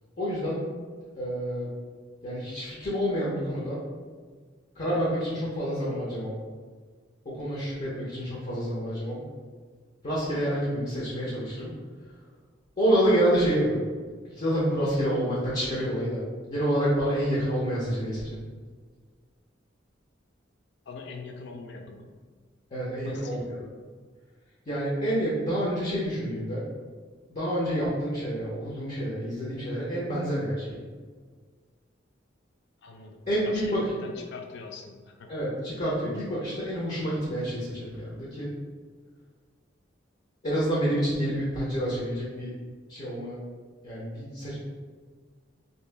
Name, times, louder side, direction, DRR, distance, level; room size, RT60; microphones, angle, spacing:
voice 1, 0.2-0.6 1.2-1.7 2.2-3.8 4.8-6.3 7.2-9.3 10.0-11.7 12.8-13.8 14.3-16.2 16.5-18.4 22.7-23.6 24.7-26.6 27.3-30.8 33.3-33.8 35.3-38.5 40.4-42.5 42.9-43.4 43.8-44.5, equal, 40° left, -7 dB, 0.8 m, -28 dB
voice 2, 20.9-22.1 23.0-23.6 32.8-35.3, left 4 dB, 65° left, 4 dB, 0.4 m, -43 dB
2.9 x 2.8 x 3.3 m, 1.5 s
head